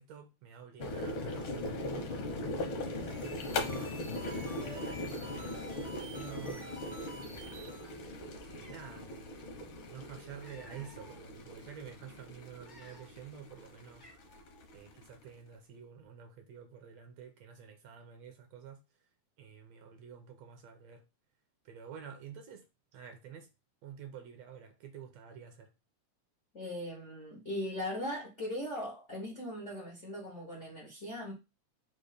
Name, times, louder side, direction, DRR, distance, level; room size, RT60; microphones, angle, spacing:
voice 1, 0.0-2.5 3.1-7.6 8.4-14.1 14.7-18.8 19.4-21.0 21.6-22.7 22.9-23.5 23.8-25.7, right 7 dB, 75° right, 1.7 m, -50 dB
sound 1, 0.8-15.3, left 2 dB, 70° left, 1.2 m, -40 dB
sound 2, 2.9-8.0, equal, 55° right, 0.5 m, -49 dB
Cat, 8.6-9.0 10.0-11.2 11.7-11.9 12.5-13.3 13.6-13.7 14.0-14.6, left 1 dB, 40° left, 0.3 m, -57 dB
voice 2, 26.5-31.3, left 1 dB, 90° left, 0.6 m, -39 dB
5.2 x 2.1 x 4.8 m
omnidirectional pair, 3.3 m